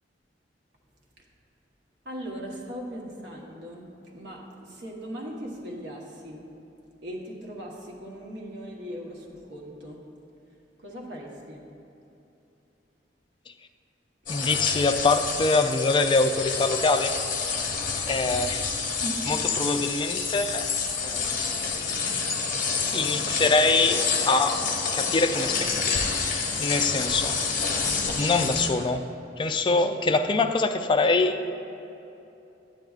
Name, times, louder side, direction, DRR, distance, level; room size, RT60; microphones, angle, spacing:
voice 1, 2.0-6.5 7.0-10.1 10.5-11.6 14.3-14.4 19.0-19.3 24.9-25.1, equal, 70° right, -1 dB, 1.1 m, -39 dB
sound 1, 14.3-28.7, left 5 dB, 50° left, 0.8 m, -28 dB
voice 2, 14.3-17.2 17.4-17.6 18.1-18.6 19.3-20.7 21.0-21.7 22.1-22.2 22.9-24.7 24.9-26.0 26.3-27.4 27.7-27.9 28.2-29.1 29.4-31.4, left 3 dB, 25° left, 7 dB, 0.3 m, -24 dB
9.7 x 9.0 x 2.4 m, 2.9 s
head